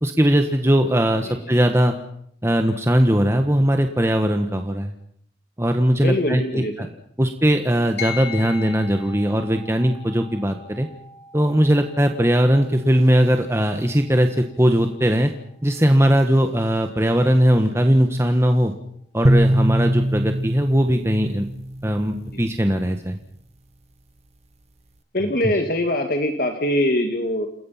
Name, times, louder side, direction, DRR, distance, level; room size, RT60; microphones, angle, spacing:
voice 1, 0.0-1.9 2.4-4.9 5.6-6.9 7.2-10.9 11.3-15.3 15.6-18.7 19.1-21.5 21.8-23.2 25.4-25.5, equal, 15° right, 5 dB, 1.4 m, -19 dB
voice 2, 1.3-1.6 6.0-6.9 22.3-22.5 25.1-27.5, left 1 dB, 55° left, 5 dB, 2.3 m, -23 dB
sound 1, 8.0-17.7, left 7 dB, 70° left, 3.9 m, -41 dB
sound 2, 19.2-22.5, right 1 dB, 40° right, 1.6 m, -22 dB
28.5 x 21.5 x 5.9 m, 0.68 s
head